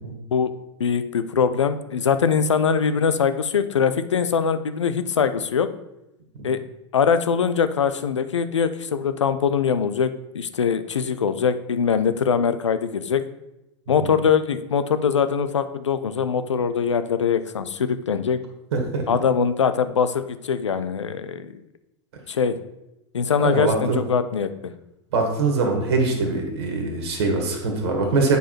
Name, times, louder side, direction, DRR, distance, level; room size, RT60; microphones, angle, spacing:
voice 1, 0.8-5.7 6.4-6.6 6.9-13.2 13.9-18.4 19.1-21.5 22.3-22.6 23.1-24.7, left 6 dB, 85° left, 12 dB, 0.5 m, -22 dB
voice 2, 18.7-19.0 23.4-24.0 25.1-28.4, right 3 dB, 65° right, 3 dB, 1.7 m, -23 dB
8.0 x 4.8 x 4.3 m, 0.92 s
hypercardioid pair, 95°, 15 cm